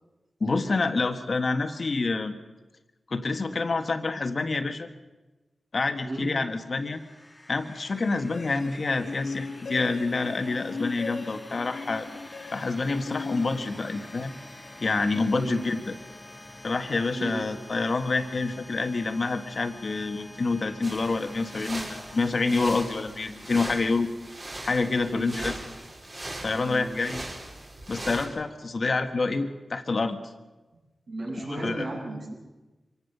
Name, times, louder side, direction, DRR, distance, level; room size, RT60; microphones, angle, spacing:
voice 1, 0.4-2.3 3.1-4.9 5.7-7.0 7.5-12.1 12.5-14.3 14.8-15.9 16.6-24.1 24.6-25.5 26.4-27.2 27.9-30.2 31.6-31.8, left 3 dB, 50° left, 7 dB, 1.4 m, -27 dB
voice 2, 6.0-6.4 15.3-15.6 17.1-17.5 25.0-25.4 26.6-26.9 31.1-32.3, right 2 dB, 65° right, -2 dB, 7.8 m, -34 dB
sound 1, 6.3-23.9, left 1 dB, 20° left, 1.4 m, -47 dB
sound 2, 8.3-14.2, left 4 dB, 70° left, 1.2 m, -38 dB
sound 3, 20.8-28.3, right 1 dB, 35° right, 4.2 m, -39 dB
25.0 x 17.0 x 6.7 m, 1.2 s
wide cardioid pair, 105°, 0 cm